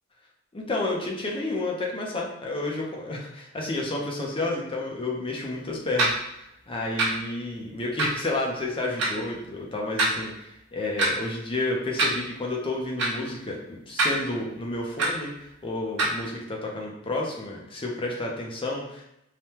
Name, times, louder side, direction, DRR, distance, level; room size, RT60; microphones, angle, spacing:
voice 1, 0.5-19.0, left 2 dB, 25° left, -2 dB, 0.6 m, -31 dB
sound 1, 6.0-6.1 7.0-7.1 8.0-8.1 9.0-9.1 10.0-10.2 11.0-11.1 12.0-12.2 13.0-13.1 14.0-14.1 15.0-15.1 16.0-16.1, right 2 dB, 60° right, 0.8 m, -23 dB
3.3 x 2.2 x 2.8 m, 0.83 s
head